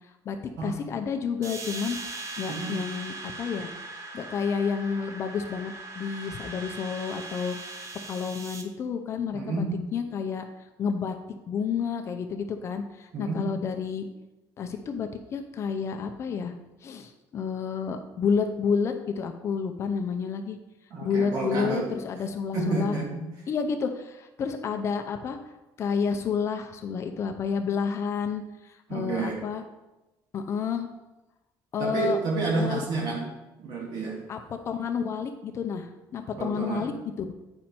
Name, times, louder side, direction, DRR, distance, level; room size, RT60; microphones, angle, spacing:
voice 1, 0.6-3.7 4.1-9.6 9.9-10.5 10.8-11.1 11.5-14.1 14.6-16.5 16.8-20.6 21.0-23.0 23.5-25.4 25.8-29.6 30.3-30.9 31.7-32.2 32.5-32.8 34.3-34.4 34.7-36.9 37.2-37.3, left 6 dB, 35° left, 6 dB, 0.6 m, -30 dB
sound 1, 1.4-8.6, right 2 dB, 35° right, 0.9 m, -40 dB
voice 2, 9.3-9.7 13.1-13.4 20.9-21.9 22.5-23.2 28.9-29.4 31.8-33.2 33.6-34.2 36.4-36.9, right 3 dB, 55° right, -1 dB, 2.2 m, -29 dB
9.1 x 5.3 x 4.4 m, 1.0 s
cardioid pair, 165°, 8 cm